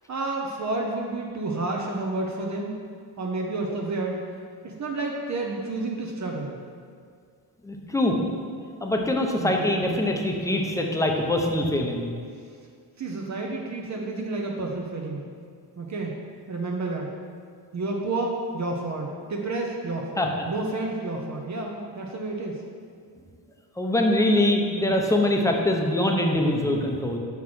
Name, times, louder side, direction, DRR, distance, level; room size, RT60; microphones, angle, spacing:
voice 1, 0.1-2.8 3.2-4.4 4.6-6.6 9.4-9.7 13.0-15.2 15.8-16.2 16.5-17.1 17.7-22.6, right 2 dB, 45° right, 0 dB, 0.9 m, -30 dB
voice 2, 7.6-8.2 8.8-12.1 20.2-20.3 23.8-27.2, left 1 dB, 10° left, 1 dB, 0.8 m, -23 dB
6.3 x 5.7 x 6.1 m, 2.1 s
cardioid pair, 120°, 39 cm